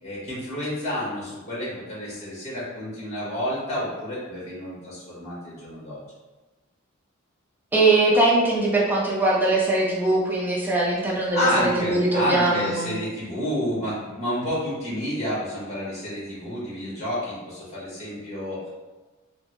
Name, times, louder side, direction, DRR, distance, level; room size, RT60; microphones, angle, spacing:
voice 1, 0.0-6.0 11.3-18.7, left 1 dB, 30° left, -7 dB, 1.2 m, -29 dB
voice 2, 7.7-12.9, right 2 dB, 10° right, -5 dB, 0.5 m, -21 dB
3.3 x 2.1 x 2.9 m, 1.2 s
head